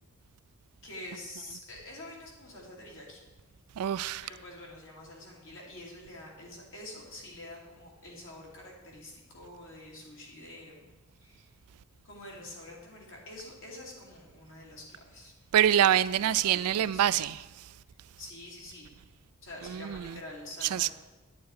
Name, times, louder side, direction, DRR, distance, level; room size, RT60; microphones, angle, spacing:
voice 1, 0.8-3.2 4.2-10.9 11.2-11.5 12.0-15.3 16.1-17.3 18.2-18.9 19.4-20.9, left 1 dB, 65° left, 2.9 m, -47 dB
voice 2, 3.8-4.2 15.5-17.4 19.7-20.2 20.6-20.9, right 10 dB, 85° right, 0.4 m, -25 dB
9.4 x 9.1 x 4.7 m
head